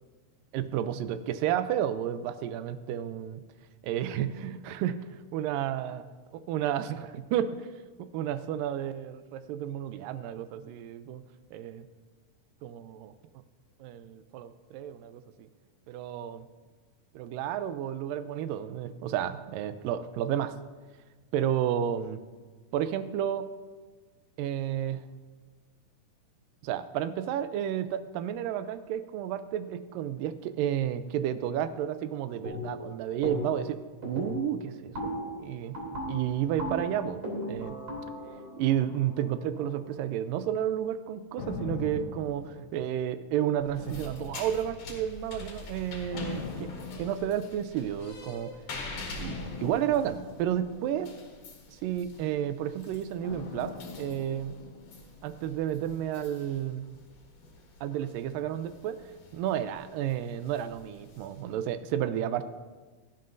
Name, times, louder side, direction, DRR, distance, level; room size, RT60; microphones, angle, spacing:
voice 1, 0.5-3.4 3.8-6.0 6.5-7.7 8.0-11.2 11.5-11.9 12.6-13.1 13.8-15.5 15.9-16.5 17.2-20.5 21.3-22.2 22.7-23.5 24.4-25.0 26.6-34.9 35.4-35.8 36.1-37.8 38.6-48.5 49.2-51.1 51.7-54.6 55.2-56.9 57.8-59.0 59.3-62.5, right 10 dB, 85° right, 12 dB, 2.2 m, -31 dB
sound 1, 32.4-32.9 33.2-33.7 34.0-39.8, left 1 dB, 30° right, 3.1 m, -37 dB
sound 2, 41.4-43.3 43.8-45.0 46.1-47.8 49.2-51.6 53.2-55.4 55.7-55.8, left 4 dB, 80° left, 2.7 m, -41 dB
sound 3, 43.6-61.7, left 2 dB, 65° left, 3.2 m, -46 dB
16.5 x 13.0 x 2.6 m, 1.4 s
omnidirectional pair, 3.9 m